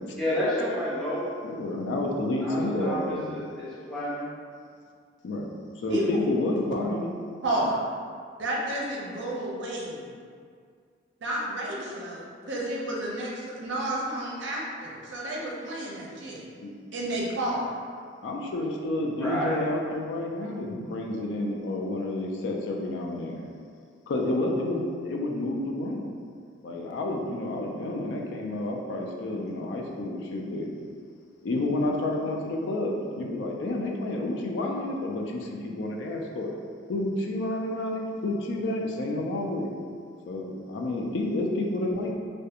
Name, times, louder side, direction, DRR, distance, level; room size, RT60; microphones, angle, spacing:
voice 1, 0.1-1.3 2.4-4.3 19.1-19.7, equal, ahead, -11 dB, 0.6 m, -30 dB
voice 2, 1.4-3.4 5.2-7.2 16.6-16.7 18.2-23.4 24.1-26.1 26.6-30.7 31.4-36.5 36.9-39.7 40.3-42.1, left 1 dB, 65° left, 1 dB, 0.3 m, -30 dB
voice 3, 5.9-6.2 7.4-7.8 8.4-10.1 11.2-16.4 16.9-17.7, right 1 dB, 65° right, -4 dB, 0.5 m, -31 dB
2.4 x 2.2 x 2.8 m, 2.1 s
head